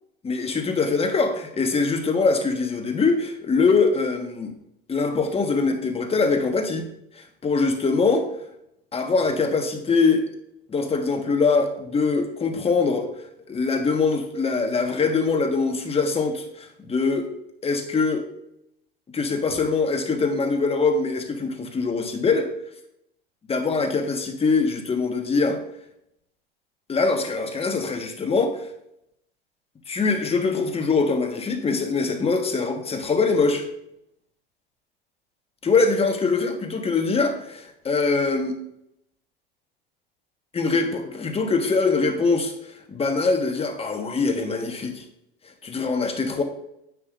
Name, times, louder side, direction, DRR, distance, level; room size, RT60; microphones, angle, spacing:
voice 1, 0.2-4.5 4.9-6.9 7.4-8.3 8.9-10.2 10.7-13.1 13.5-17.3 17.6-18.2 19.1-22.5 23.5-25.6 26.9-28.6 29.9-33.6 35.6-38.5 40.5-45.0 45.6-46.4, left 4 dB, 20° left, 5 dB, 1.4 m, -23 dB
9.8 x 7.6 x 2.6 m, 0.78 s
hypercardioid pair, 80°, 30 cm